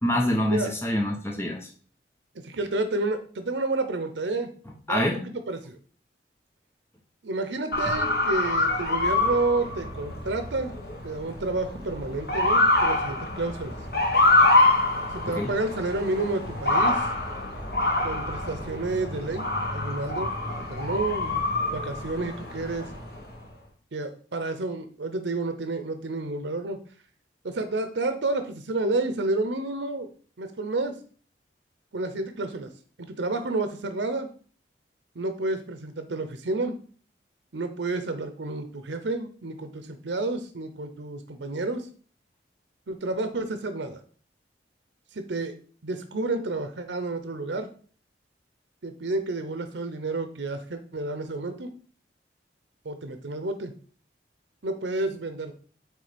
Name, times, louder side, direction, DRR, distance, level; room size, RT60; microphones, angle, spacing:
voice 1, 0.0-1.7 4.9-5.2 15.3-15.5, left 1 dB, 15° left, 0 dB, 0.9 m, -25 dB
voice 2, 2.3-4.5 4.9-5.8 7.2-10.7 11.0-13.8 15.1-17.1 18.0-21.4 21.7-22.9 23.9-26.8 27.4-30.1 30.4-31.0 31.9-32.7 33.0-34.3 35.2-36.8 37.5-41.9 42.9-44.0 45.1-45.6 45.8-47.7 48.8-51.7 52.8-53.7 54.6-55.5, right 2 dB, 80° right, 8 dB, 0.7 m, -30 dB
Motor vehicle (road) / Siren, 7.7-23.3, left 2 dB, 60° left, 1.7 m, -25 dB
8.3 x 3.3 x 5.1 m, 0.44 s
head